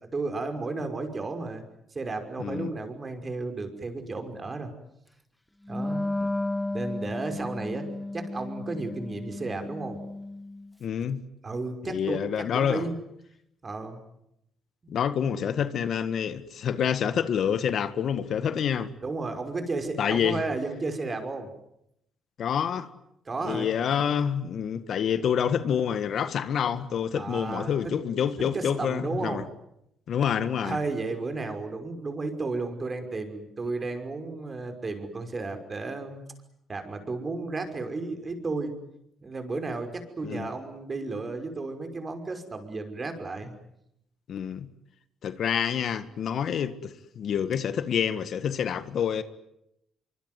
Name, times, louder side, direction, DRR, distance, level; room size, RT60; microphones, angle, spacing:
voice 1, 0.0-1.6 1.9-4.7 5.7-6.0 6.7-10.0 11.4-12.2 12.5-13.0 13.6-14.0 19.0-21.5 23.3-23.7 27.2-27.7 28.5-29.5 30.6-36.2 36.7-38.7 39.2-43.5, right 3 dB, 30° right, 5.7 m, -33 dB
voice 2, 2.4-2.7 10.8-11.2 11.8-12.8 14.9-18.9 20.0-20.4 22.4-22.9 23.4-29.4 30.1-30.8 40.2-40.5 44.3-44.7 45.2-49.2, left 8 dB, 65° left, 1.8 m, -27 dB
Wind instrument woodwind instrument, 5.7-10.7, left 2 dB, 10° left, 1.3 m, -33 dB
25.0 x 24.5 x 9.5 m
cardioid pair, 90°, 0 cm